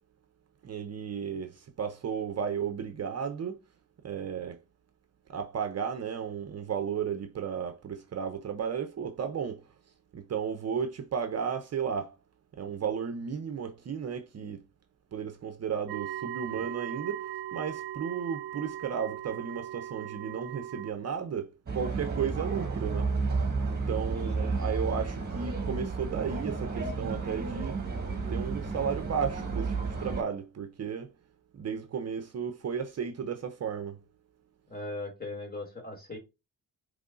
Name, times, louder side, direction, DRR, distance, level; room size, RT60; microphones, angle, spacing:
voice 1, 0.6-3.6 4.0-4.6 5.3-9.7 10.1-12.2 12.6-14.7 15.1-23.1 23.7-27.8 28.3-31.1 31.5-34.0, right 7 dB, 45° right, 0.7 m, -34 dB
sound 1, 15.9-20.9, right 13 dB, 90° right, 0.5 m, -39 dB
sound 2, 21.7-30.2, right 4 dB, 25° right, 1.7 m, -32 dB
voice 2, 24.1-25.0 34.7-36.2, left 2 dB, 25° left, 2.7 m, -40 dB
5.1 x 3.2 x 2.5 m
cardioid pair, 90°, 36 cm